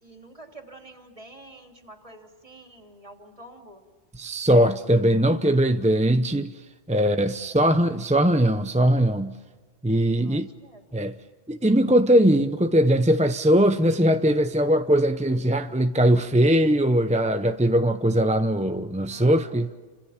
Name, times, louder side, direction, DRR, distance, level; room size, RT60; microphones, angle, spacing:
voice 1, 0.0-3.8 6.9-7.6 10.2-11.1 19.1-19.8, right 2 dB, 25° right, 3.2 m, -48 dB
voice 2, 4.1-6.5 6.9-9.3 9.8-10.5 10.9-11.1 11.5-19.7, right 1 dB, 10° right, 0.5 m, -20 dB
29.5 x 26.0 x 5.8 m
omnidirectional pair, 1.3 m